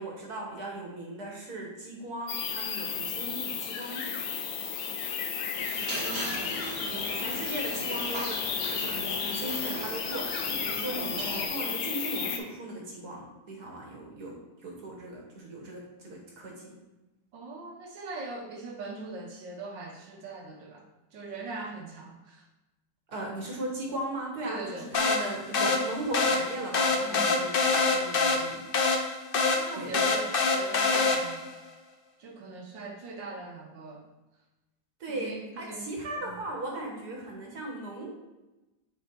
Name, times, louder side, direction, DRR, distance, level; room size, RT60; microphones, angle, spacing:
voice 1, 0.0-4.4 6.8-16.7 23.1-28.6 29.7-30.0 35.0-38.1, right 1 dB, 60° right, -1 dB, 1.8 m, -38 dB
sound 1, 2.3-12.4, left 7 dB, 90° left, 1.4 m, -33 dB
sound 2, 5.5-11.5, right 3 dB, 40° right, 1.0 m, -39 dB
voice 2, 5.9-6.5 17.3-20.8 21.1-22.5 24.4-24.9 25.5-25.8 27.0-27.5 29.5-31.5 32.2-34.1 35.1-35.9 36.2-36.4, right 3 dB, 85° right, 1 dB, 1.8 m, -41 dB
sound 3, 24.9-31.5, left 3 dB, 55° left, 0.6 m, -26 dB
7.1 x 4.2 x 4.5 m, 1.1 s
omnidirectional pair, 1.9 m